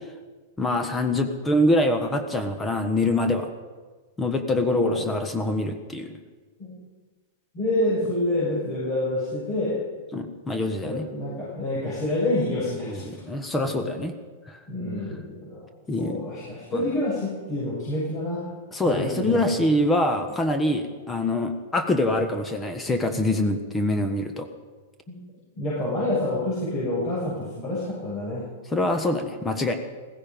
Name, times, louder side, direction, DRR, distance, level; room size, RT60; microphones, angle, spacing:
voice 1, 0.6-3.5 4.2-6.1 10.1-11.1 12.9-14.2 14.5-14.6 15.9-16.2 16.7-16.9 18.7-24.5 28.7-29.7, left 1 dB, 10° left, 6 dB, 1.3 m, -25 dB
voice 2, 4.7-5.1 6.6-6.8 7.5-9.8 10.8-13.2 14.7-15.7 16.0-18.5 18.9-19.7 22.9-23.2 25.1-25.2 25.6-28.4, left 1 dB, 35° left, -7 dB, 6.9 m, -28 dB
15.5 x 15.5 x 5.3 m, 1.4 s
hypercardioid pair, 135°, 0 cm